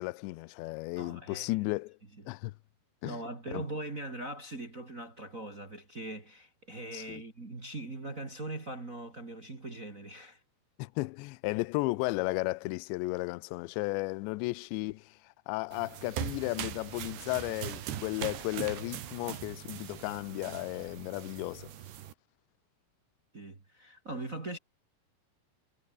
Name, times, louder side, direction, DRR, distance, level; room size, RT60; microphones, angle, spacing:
voice 1, 0.0-2.0 2.3-2.5 3.0-3.2 3.5-3.6 6.9-7.2 10.8-21.7, left 23 dB, 85° left, 2.6 m, -34 dB
voice 2, 1.0-1.5 3.0-10.4 23.3-24.6, right 2 dB, 30° right, 1.6 m, -41 dB
sound 1, 15.7-22.1, right 11 dB, 60° right, 3.8 m, -41 dB
omnidirectional pair, 5.8 m